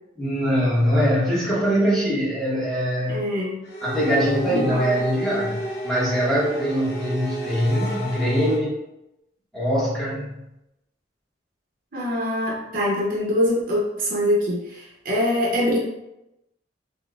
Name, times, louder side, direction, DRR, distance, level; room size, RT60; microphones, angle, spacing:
voice 1, 0.2-3.2 3.8-8.8 9.5-10.4, equal, ahead, -8 dB, 0.8 m, -22 dB
voice 2, 3.1-3.6 4.5-4.9 11.9-15.8, left 1 dB, 50° right, -4 dB, 0.6 m, -24 dB
sound 1, 3.6-8.6, right 1 dB, 65° left, 0.9 m, -32 dB
4.0 x 2.0 x 2.2 m, 0.90 s
head